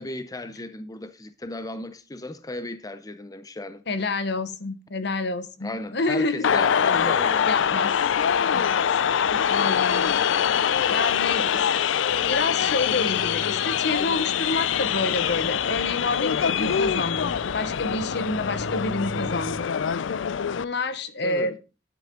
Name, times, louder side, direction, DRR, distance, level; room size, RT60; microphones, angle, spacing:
voice 1, 0.0-3.8 5.6-7.7 21.2-21.5, left 2 dB, 20° left, 0.6 m, -35 dB
voice 2, 3.9-6.5 7.5-7.9 8.5-8.8 9.3-10.2 10.4-11.6 12.3-19.7 20.6-21.6, left 3 dB, 65° left, 1.0 m, -28 dB
sound 1, 6.4-20.6, left 8 dB, 90° left, 0.4 m, -24 dB
sound 2, 12.1-19.7, right 3 dB, 45° right, 0.7 m, -43 dB
10.5 x 10.5 x 3.8 m
head